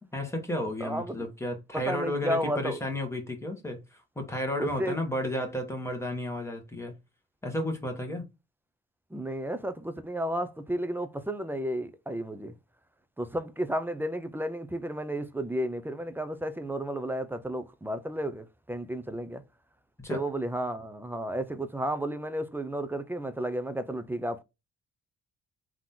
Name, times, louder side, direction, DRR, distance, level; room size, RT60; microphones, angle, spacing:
voice 1, 0.1-6.9 7.4-8.2 20.0-20.2, left 1 dB, 10° left, 1.6 m, -33 dB
voice 2, 0.8-1.3 1.7-2.8 4.6-5.0 9.1-12.5 13.2-19.4 20.1-24.4, right 1 dB, 5° right, 0.6 m, -32 dB
3.8 x 3.0 x 3.8 m
cardioid pair, 90°, 30 cm